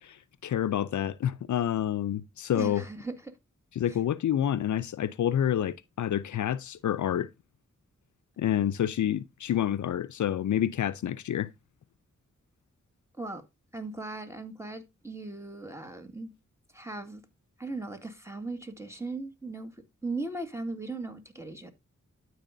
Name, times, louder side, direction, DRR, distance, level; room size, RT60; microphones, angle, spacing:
voice 1, 0.0-2.8 3.8-7.3 8.4-11.5, left 10 dB, 70° left, 0.5 m, -28 dB
voice 2, 2.5-3.4 3.9-4.0 13.2-13.4 13.7-16.3 16.7-17.2 17.6-19.8 20.0-21.7, right 3 dB, 10° right, 1.8 m, -38 dB
12.0 x 4.7 x 2.6 m
cardioid pair, 45°, 30 cm